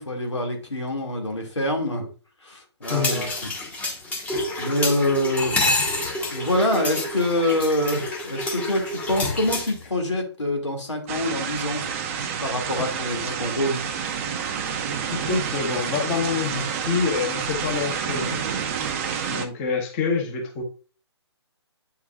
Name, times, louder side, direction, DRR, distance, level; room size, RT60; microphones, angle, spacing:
voice 1, 0.0-2.1 2.4-3.5 4.6-5.8 6.3-11.8 12.4-13.8, left 1 dB, 85° left, 1 dB, 2.3 m, -25 dB
sound 1, 2.8-9.9, left 2 dB, 10° left, 1.2 m, -28 dB
voice 2, 2.9-3.3 15.1-18.4 19.3-20.6, left 5 dB, 30° left, 0 dB, 1.4 m, -26 dB
sound 2, 11.1-19.5, right 7 dB, 30° right, 0.6 m, -29 dB
8.4 x 4.7 x 2.4 m, 0.37 s
figure-of-eight pair, 140°, 15 cm